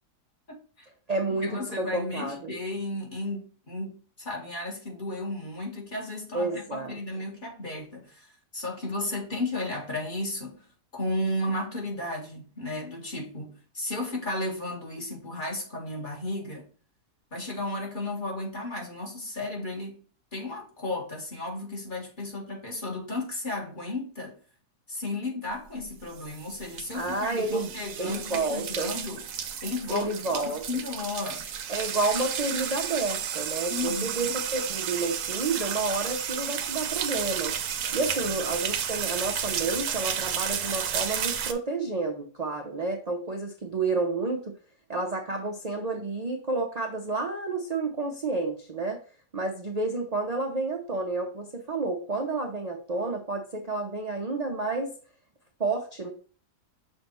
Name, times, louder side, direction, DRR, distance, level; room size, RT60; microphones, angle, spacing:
voice 1, 0.5-0.9 1.3-10.7 10.9-16.7 17.3-20.0 20.3-24.4 24.9-29.2 29.6-31.5 33.7-34.4 38.2-38.4, left 2 dB, 30° left, 1.7 m, -34 dB
voice 2, 1.1-2.6 6.3-7.0 26.9-27.7 28.0-28.9 29.9-30.7 31.7-37.5 37.9-44.5 44.9-49.0 49.3-54.9 55.6-56.1, right 3 dB, 40° right, 0.5 m, -30 dB
sound 1, 25.8-41.5, right 8 dB, 70° right, 1.2 m, -32 dB
6.5 x 2.7 x 5.3 m
omnidirectional pair, 1.7 m